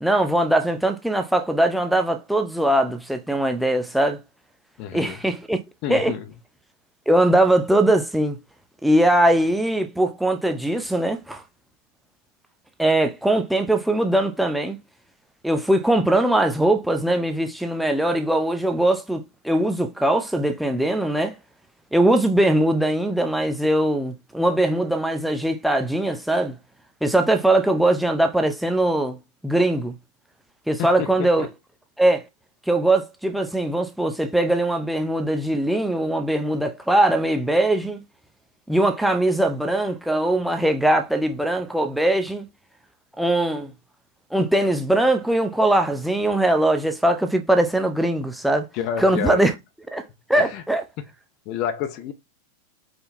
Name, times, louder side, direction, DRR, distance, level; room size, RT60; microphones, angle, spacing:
voice 1, 0.0-4.2 4.9-5.6 5.9-6.1 7.1-8.4 8.8-11.4 12.8-14.8 15.4-21.3 21.9-26.5 27.0-29.2 29.4-29.9 30.7-31.5 32.0-32.2 32.7-38.0 38.7-42.4 43.2-43.7 44.3-48.7 49.0-49.5 49.9-50.0 50.3-50.8, right 1 dB, ahead, 0.6 m, -21 dB
voice 2, 4.8-5.2 5.8-6.3 30.8-31.5 48.7-49.4 50.3-50.6 51.5-52.1, left 9 dB, 40° left, 0.6 m, -29 dB
5.1 x 2.3 x 4.1 m
figure-of-eight pair, 90°, 0 cm